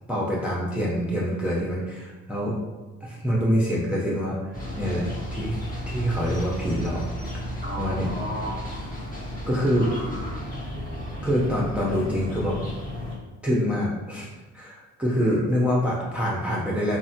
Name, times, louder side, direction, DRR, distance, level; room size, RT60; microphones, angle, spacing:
voice 1, 0.1-2.5 3.0-4.4 4.8-5.6 5.9-7.1 7.8-8.1 9.5-9.9 11.2-12.6 13.4-14.3 14.5-17.0, equal, 5° right, -6 dB, 0.5 m, -25 dB
sound 1, 4.5-13.2, left 1 dB, 30° left, 0.8 m, -33 dB
voice 2, 7.6-8.8 9.7-10.4 15.2-15.4, right 1 dB, 45° left, -4 dB, 1.2 m, -35 dB
3.3 x 2.1 x 2.7 m, 1.2 s
cardioid pair, 90°, 30 cm